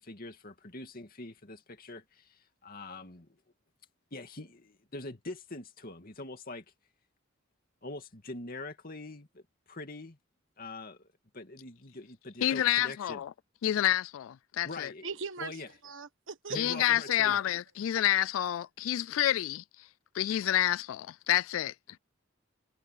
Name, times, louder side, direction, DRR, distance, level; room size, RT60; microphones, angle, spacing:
voice 1, 0.0-3.4 4.1-6.6 7.8-9.4 9.7-10.2 10.6-13.2 14.6-15.1 15.4-15.7 16.5-17.4, left 2 dB, 45° left, 2.5 m, -44 dB
voice 2, 12.4-13.3 13.6-14.9 16.6-19.6 20.1-21.7, left 12 dB, 80° left, 0.3 m, -28 dB
voice 3, 15.0-15.5 15.8-16.8 17.3-17.4 17.9-18.1, right 4 dB, 70° right, 1.4 m, -39 dB
head